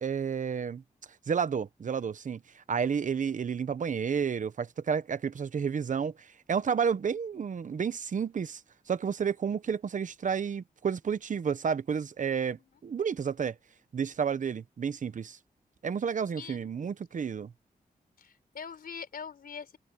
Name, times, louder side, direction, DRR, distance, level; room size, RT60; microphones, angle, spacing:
voice 1, 0.0-0.8 1.3-8.6 8.9-13.5 13.9-15.4 15.8-17.5, right 6 dB, 55° right, 0.9 m, -31 dB
voice 2, 16.4-16.7 18.2-19.8, left 6 dB, 85° left, 4.0 m, -43 dB
wide cardioid pair, 115°, 15 cm